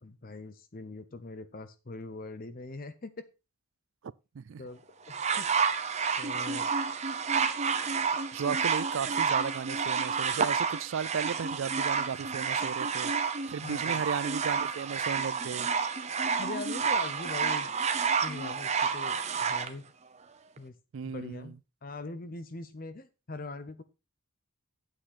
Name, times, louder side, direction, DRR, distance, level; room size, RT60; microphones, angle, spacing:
voice 1, 0.0-3.3 4.6-4.8 5.1-5.7 6.2-6.7 13.6-14.0 16.4-17.7 18.2-19.8 20.6-20.8 21.0-21.5 21.8-23.8, left 3 dB, 40° left, 0.7 m, -42 dB
sound 1, 5.1-19.7 20.6-20.7, right 5 dB, 30° right, 0.7 m, -30 dB
voice 2, 8.3-13.1 13.5-15.7 20.9-21.5, right 6 dB, 60° right, 0.4 m, -35 dB
8.8 x 7.7 x 4.2 m
head